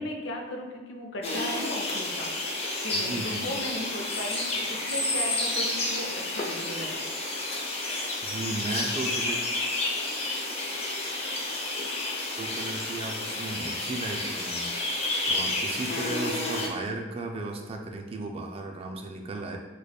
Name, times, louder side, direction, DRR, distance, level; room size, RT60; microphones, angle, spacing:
voice 1, 0.0-7.1, left 1 dB, 85° left, 2 dB, 0.5 m, -36 dB
sound 1, 1.2-16.7, left 2 dB, 35° left, 0.5 m, -30 dB
voice 2, 2.9-3.5 8.2-9.4 12.4-19.6, right 2 dB, 30° right, 3 dB, 0.3 m, -35 dB
5.0 x 2.2 x 2.3 m, 1.3 s
head